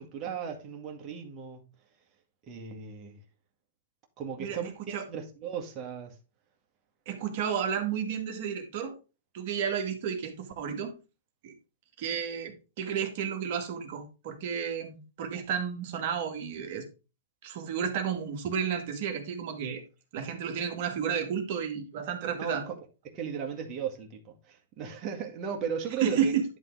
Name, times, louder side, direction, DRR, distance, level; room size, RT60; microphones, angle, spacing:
voice 1, 0.0-1.6 2.5-3.2 4.2-6.1 22.4-22.8 23.0-26.3, right 7 dB, 30° right, 2.0 m, -36 dB
voice 2, 7.1-8.9 9.3-10.9 11.4-11.5 12.0-16.8 17.4-19.8 20.1-22.6 26.0-26.4, right 7 dB, 50° right, 2.0 m, -32 dB
11.0 x 3.7 x 4.7 m
hypercardioid pair, 140°, 0 cm